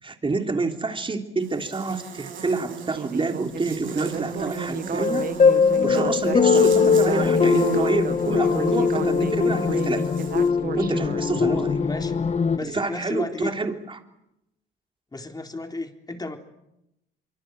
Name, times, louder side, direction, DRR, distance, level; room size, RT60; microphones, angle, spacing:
voice 1, 0.0-5.3 5.8-10.1 10.7-11.8 12.6-13.7, right 3 dB, 25° right, 4 dB, 3.3 m, -28 dB
Buzz, 1.4-10.5, right 7 dB, 80° right, 7.1 m, -36 dB
Speech synthesizer, 2.9-11.2, right 7 dB, 50° right, 1.2 m, -33 dB
sound 1, 4.7-12.6, left 5 dB, 35° left, 1.4 m, -21 dB
voice 2, 11.3-13.5 15.1-16.4, left 2 dB, 20° left, 4 dB, 3.9 m, -33 dB
25.0 x 24.5 x 8.0 m, 0.86 s
cardioid pair, 90°, 20 cm